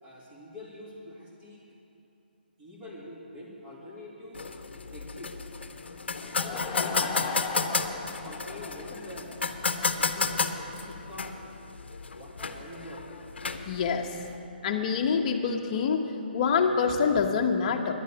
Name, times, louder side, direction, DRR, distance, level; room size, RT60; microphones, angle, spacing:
voice 1, 0.0-1.6 2.6-4.5 4.9-5.4 6.2-7.9 8.2-11.4 12.1-13.1, left 1 dB, 15° right, -4 dB, 2.3 m, -45 dB
sound 1, 4.3-14.4, left 4 dB, 85° left, 0.8 m, -33 dB
Laughter / Crowd, 6.2-9.7, left 5 dB, 20° left, 0.8 m, -37 dB
voice 2, 13.7-14.2 14.6-16.0 16.3-17.9, left 6 dB, 35° left, 3 dB, 1.0 m, -26 dB
10.5 x 8.1 x 8.7 m, 2.8 s
hypercardioid pair, 155°, 6 cm